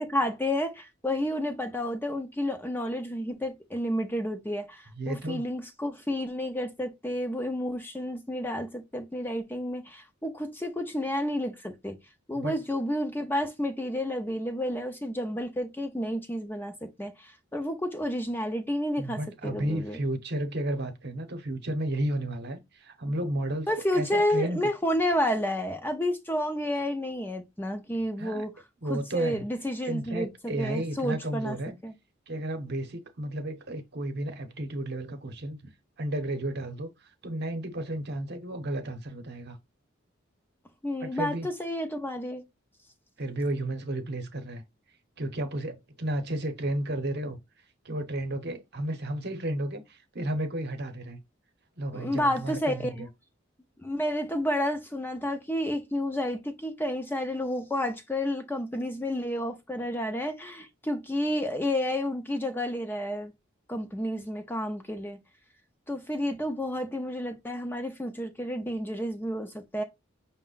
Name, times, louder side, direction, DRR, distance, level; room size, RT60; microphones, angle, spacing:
voice 1, 0.0-12.0 12.3-20.0 23.7-28.5 28.9-31.6 31.8-31.9 40.8-42.4 51.9-53.1 53.8-63.3 63.7-65.2 65.9-69.8, left 1 dB, 10° left, 0.5 m, -30 dB
voice 2, 5.0-5.4 12.3-12.6 19.0-24.6 28.2-28.5 28.8-29.4 29.8-31.8 32.3-35.6 36.0-36.9 37.2-39.6 41.0-41.5 43.2-44.6 45.2-47.4 47.8-51.2 51.8-53.1, right 1 dB, 55° right, 0.9 m, -32 dB
5.9 x 2.1 x 3.9 m
head